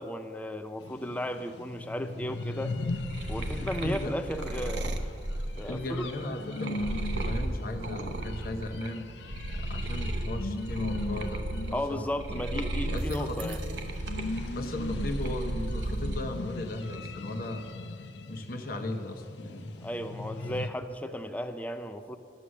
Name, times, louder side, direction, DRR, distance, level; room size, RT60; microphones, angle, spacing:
voice 1, 0.0-2.7 3.3-5.0 5.6-6.1 11.7-13.6 19.8-22.2, equal, 10° left, 9 dB, 0.5 m, -35 dB
sound 1, 0.8-20.7, left 2 dB, 80° left, 0.6 m, -39 dB
sound 2, 2.7-8.9 9.2-16.2 16.6-17.3, right 1 dB, 80° right, 0.9 m, -34 dB
voice 2, 3.8-4.1 5.7-9.1 9.5-12.0 12.3-13.6 14.6-17.7 18.3-19.8, left 1 dB, 55° left, 4 dB, 1.0 m, -36 dB
11.0 x 8.5 x 6.4 m, 2.4 s
head